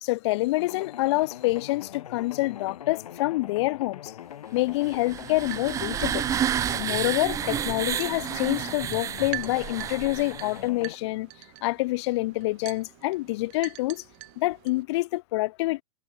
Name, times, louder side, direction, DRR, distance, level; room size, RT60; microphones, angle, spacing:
voice 1, 0.0-4.1 4.5-6.2 6.7-11.3 11.6-14.0 14.4-15.8, left 20 dB, 45° left, 0.6 m, -27 dB
sound 1, 0.6-11.0, left 10 dB, 75° left, 5.3 m, -42 dB
sound 2, 4.8-10.7, right 9 dB, 15° right, 0.7 m, -30 dB
sound 3, 5.1-14.8, right 33 dB, 45° right, 7.5 m, -45 dB
hypercardioid pair, 140°, 19 cm